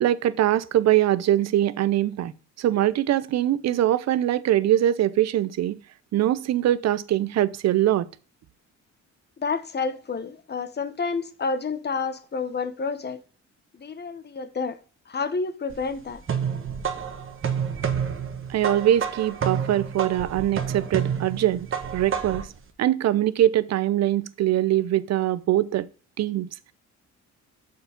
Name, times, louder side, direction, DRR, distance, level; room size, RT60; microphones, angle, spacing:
voice 1, 0.0-2.3 2.6-5.8 6.1-8.1 18.5-21.7 21.9-22.5 22.8-25.9 26.2-26.7, right 12 dB, 60° right, 0.6 m, -22 dB
voice 2, 9.4-13.2 13.7-14.8 15.1-16.2, left 4 dB, 35° left, 1.0 m, -29 dB
sound 1, 15.7-22.6, right 7 dB, 45° right, 1.2 m, -29 dB
6.7 x 4.6 x 5.1 m
cardioid pair, 90°, 30 cm